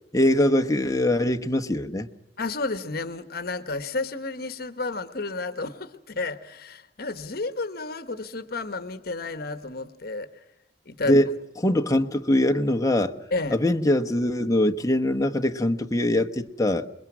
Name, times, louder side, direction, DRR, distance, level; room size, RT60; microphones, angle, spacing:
voice 1, 0.1-2.1 11.1-11.3 11.6-13.1 13.5-16.9, left 1 dB, 20° left, 1.1 m, -22 dB
voice 2, 2.4-10.3 10.9-11.2 13.3-13.6, left 3 dB, 60° left, 1.2 m, -31 dB
27.5 x 22.0 x 6.0 m
head